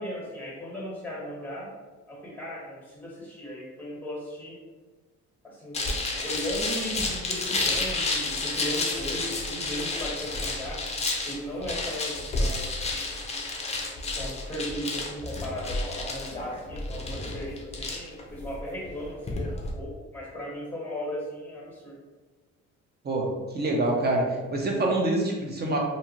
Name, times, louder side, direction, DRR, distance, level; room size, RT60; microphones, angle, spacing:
voice 1, 0.0-1.7 2.1-4.5 5.4-5.8 6.1-10.8 11.2-12.8 14.2-21.9, equal, 5° left, -4 dB, 1.3 m, -36 dB
sound 1, 5.7-19.7, left 2 dB, 20° left, 0.5 m, -31 dB
voice 2, 23.0-25.8, right 2 dB, 35° right, 0 dB, 0.7 m, -26 dB
2.6 x 2.4 x 3.0 m, 1.3 s
cardioid pair, 90°, 30 cm